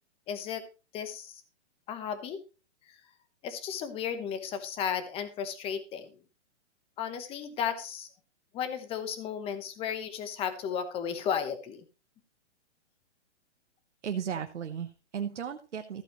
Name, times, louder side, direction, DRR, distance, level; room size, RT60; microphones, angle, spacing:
voice 1, 0.3-0.6 0.9-1.4 1.9-2.4 2.9-3.0 3.4-6.1 7.0-8.1 8.5-11.8, left 8 dB, 15° left, 10 dB, 1.2 m, -34 dB
voice 2, 14.0-16.0, right 8 dB, 85° right, 5 dB, 1.2 m, -35 dB
14.5 x 8.3 x 3.1 m, 0.32 s
hypercardioid pair, 150°, 34 cm